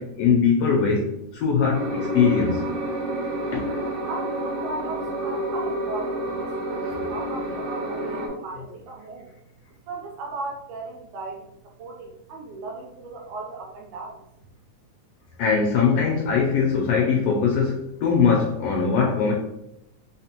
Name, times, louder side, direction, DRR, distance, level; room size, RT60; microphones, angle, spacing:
voice 1, 0.0-2.7 3.5-3.9 15.4-19.3, left 5 dB, 75° left, -1 dB, 1.5 m, -21 dB
sound 1, 1.7-8.3, right 1 dB, 65° right, 1.9 m, -29 dB
voice 2, 4.1-9.3 9.9-14.2, right 3 dB, 85° right, -1 dB, 1.2 m, -37 dB
4.8 x 3.5 x 2.9 m, 0.83 s
omnidirectional pair, 3.3 m